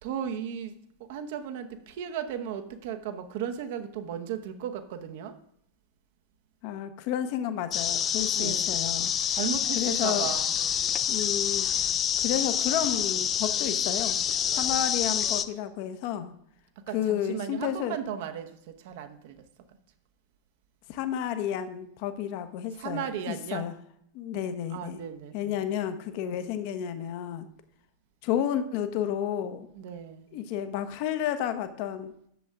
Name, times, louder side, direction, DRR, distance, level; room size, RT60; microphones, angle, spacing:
voice 1, 0.0-0.7 1.0-5.3 8.4-8.8 9.3-10.6 11.8-11.9 16.9-19.4 22.7-23.6 24.7-25.6 29.7-30.3, right 8 dB, 50° right, 8 dB, 1.0 m, -36 dB
voice 2, 6.6-9.1 9.8-10.3 11.1-11.7 12.2-14.2 14.5-16.3 16.9-18.0 20.9-23.7 24.1-25.0 25.3-27.5 28.2-29.7 30.3-32.1, left 10 dB, 45° left, 9 dB, 0.9 m, -31 dB
sound 1, 7.7-15.4, left 9 dB, 30° left, 0.5 m, -27 dB
10.5 x 7.4 x 3.6 m, 0.71 s
figure-of-eight pair, 90°, 0 cm